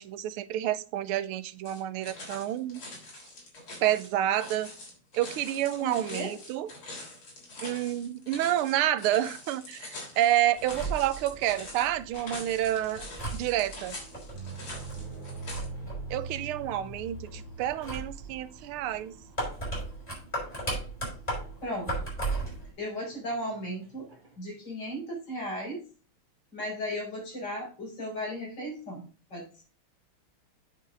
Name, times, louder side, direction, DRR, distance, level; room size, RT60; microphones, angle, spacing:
voice 1, 0.0-2.8 3.8-4.7 5.1-6.7 7.6-13.0 13.3-14.0 16.1-19.1, right 12 dB, 85° right, 1.5 m, -29 dB
sound 1, 1.6-15.6, left 2 dB, 75° left, 4.4 m, -44 dB
voice 2, 5.8-6.3 21.6-22.1 22.8-24.1 24.4-25.8 26.5-29.6, equal, 50° left, 5.6 m, -36 dB
sound 2, 10.6-22.7, right 2 dB, 15° left, 5.7 m, -38 dB
sound 3, 14.3-21.1 21.8-22.2 22.5-22.6 23.0-24.3, right 3 dB, 25° right, 2.1 m, -43 dB
9.0 x 6.7 x 3.8 m
omnidirectional pair, 2.4 m